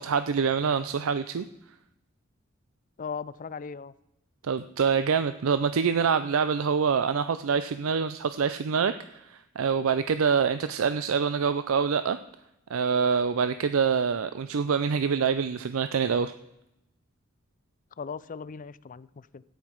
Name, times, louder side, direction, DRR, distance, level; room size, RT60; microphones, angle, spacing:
voice 1, 0.0-1.5 4.4-12.2 12.7-16.3, right 6 dB, 90° right, 11 dB, 0.5 m, -25 dB
voice 2, 3.0-3.9 18.0-19.4, left 5 dB, 40° left, 18 dB, 0.4 m, -38 dB
13.0 x 9.5 x 4.5 m, 0.87 s
head